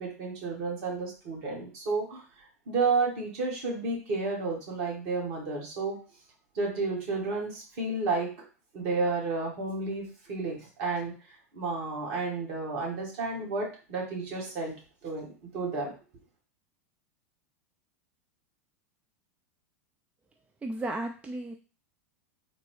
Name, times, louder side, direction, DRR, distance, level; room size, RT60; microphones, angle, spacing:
voice 1, 0.0-2.2 2.7-6.0 6.5-8.3 8.7-11.1 11.5-14.7 15.0-15.9, right 3 dB, 50° right, -1 dB, 1.7 m, -31 dB
voice 2, 20.6-21.5, right 2 dB, 15° right, 4 dB, 0.3 m, -34 dB
3.8 x 2.2 x 3.2 m, 0.35 s
figure-of-eight pair, 90°, 8 cm